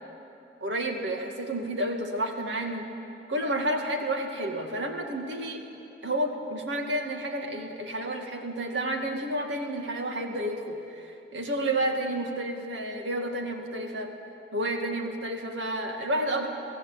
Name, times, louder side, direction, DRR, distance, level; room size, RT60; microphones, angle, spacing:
voice 1, 0.6-2.9 3.3-5.6 6.0-14.1 14.5-16.5, right 1 dB, 85° right, 3 dB, 2.3 m, -30 dB
24.5 x 16.0 x 8.2 m, 2.7 s
head